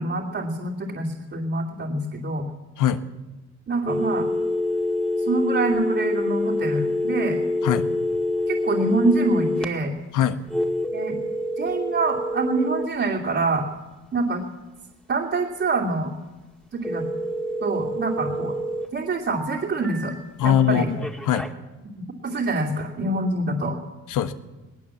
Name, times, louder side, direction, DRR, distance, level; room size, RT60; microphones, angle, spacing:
voice 1, 0.0-2.5 3.7-4.3 5.3-7.4 8.5-9.9 10.9-11.2 11.6-13.7 14.1-14.4 15.1-16.1 16.7-17.0 17.6-18.6 18.9-20.1 20.4-20.9 22.2-23.8, right 3 dB, 45° right, -4 dB, 2.8 m, -25 dB
sound 1, 3.9-9.7 10.5-12.9 16.8-18.9 19.3-20.1 21.0-21.5, left 1 dB, 5° left, 2.1 m, -26 dB
voice 2, 20.4-21.5 24.1-24.3, left 10 dB, 85° left, 9 dB, 1.4 m, -22 dB
19.0 x 19.0 x 7.3 m, 1.1 s
cardioid pair, 90°, 30 cm